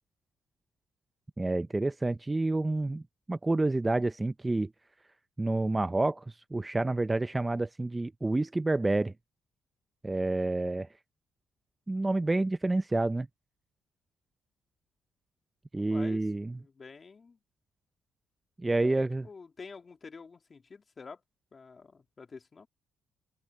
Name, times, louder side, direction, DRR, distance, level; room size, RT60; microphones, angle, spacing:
voice 1, 1.4-3.0 3.3-4.7 5.4-9.1 10.0-10.9 11.9-13.3 15.7-16.6 18.6-19.2, right 2 dB, 15° right, 0.5 m, -29 dB
voice 2, 15.9-16.2 16.6-17.4 18.8-21.2 21.5-22.7, left 4 dB, 35° left, 2.6 m, -48 dB
open air
cardioid pair, 90°, 0 cm